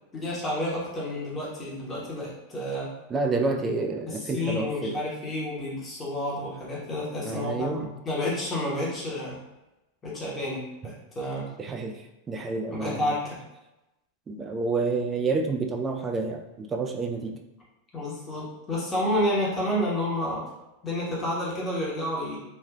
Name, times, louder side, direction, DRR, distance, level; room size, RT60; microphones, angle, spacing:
voice 1, 0.1-2.9 4.1-9.4 10.0-11.5 12.7-13.4 17.9-20.4 20.8-22.4, left 1 dB, 20° left, -5 dB, 1.0 m, -30 dB
voice 2, 3.1-5.0 7.2-7.9 11.6-11.9 12.3-13.1 14.3-17.4, right 3 dB, 20° right, 4 dB, 0.4 m, -29 dB
3.2 x 2.6 x 2.2 m, 0.97 s
figure-of-eight pair, 90°, 0 cm